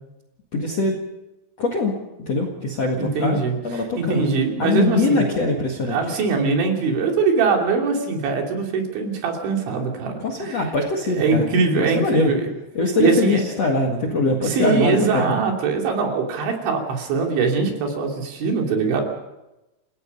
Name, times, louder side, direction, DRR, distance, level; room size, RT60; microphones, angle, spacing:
voice 1, 0.5-1.0 1.6-1.9 2.3-4.2 4.6-6.0 10.2-11.5 11.8-12.3 12.7-15.4, left 3 dB, 50° left, 3 dB, 2.0 m, -22 dB
voice 2, 3.0-3.6 4.0-5.3 5.9-10.1 10.4-10.6 11.1-12.4 13.0-13.4 14.4-19.0, right 4 dB, 70° right, 1 dB, 5.2 m, -22 dB
29.0 x 16.5 x 5.4 m, 0.96 s
omnidirectional pair, 5.7 m